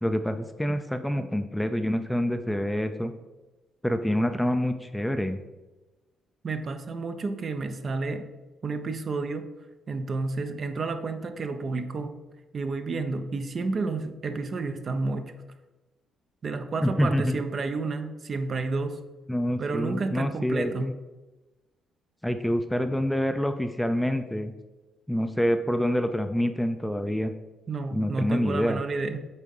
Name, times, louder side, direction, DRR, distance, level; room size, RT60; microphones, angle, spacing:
voice 1, 0.0-3.1 3.8-5.4 16.8-17.4 19.3-20.9 22.2-24.5 25.1-27.3 27.9-28.8, equal, 5° left, 8 dB, 0.5 m, -26 dB
voice 2, 6.4-8.2 8.6-9.5 9.9-12.1 12.5-15.3 16.4-19.0 19.6-20.9 27.7-29.2, right 3 dB, 45° right, 8 dB, 0.7 m, -31 dB
8.3 x 3.7 x 5.4 m, 1.1 s
cardioid pair, 90°, 0 cm